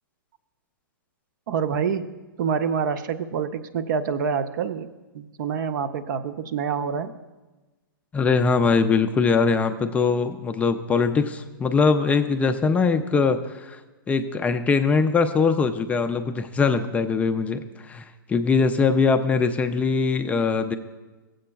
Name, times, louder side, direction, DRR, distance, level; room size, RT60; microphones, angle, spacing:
voice 1, 1.5-2.1 2.4-4.9 5.1-7.1, right 6 dB, 60° right, 10 dB, 0.5 m, -26 dB
voice 2, 8.1-13.8 14.1-20.8, left 4 dB, 10° left, 7 dB, 0.3 m, -22 dB
16.5 x 7.6 x 2.3 m, 1.2 s
hypercardioid pair, 130°, 12 cm